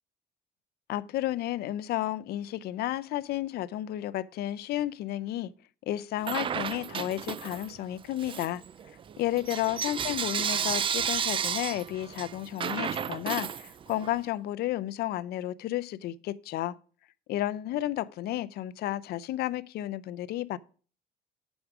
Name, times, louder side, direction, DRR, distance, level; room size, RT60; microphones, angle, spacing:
voice 1, 0.9-5.5 5.9-8.6 9.2-16.7 17.3-20.6, left 14 dB, 70° left, 0.5 m, -32 dB
Bell / Coin (dropping), 6.2-7.8 8.2-14.1, right 7 dB, 30° right, 0.4 m, -32 dB
8.7 x 6.2 x 4.9 m
cardioid pair, 110°, 17 cm